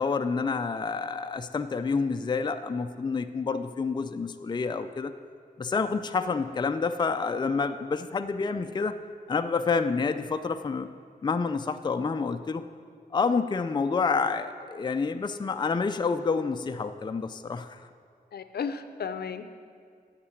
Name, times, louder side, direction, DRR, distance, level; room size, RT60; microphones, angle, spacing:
voice 1, 0.0-5.1 5.6-9.0 9.3-10.9 11.2-12.6 13.1-17.9, left 4 dB, 25° left, 8 dB, 0.4 m, -28 dB
voice 2, 18.3-19.5, left 6 dB, 75° left, 11 dB, 0.6 m, -34 dB
8.6 x 7.4 x 8.3 m, 2.2 s
wide cardioid pair, 105°, 17 cm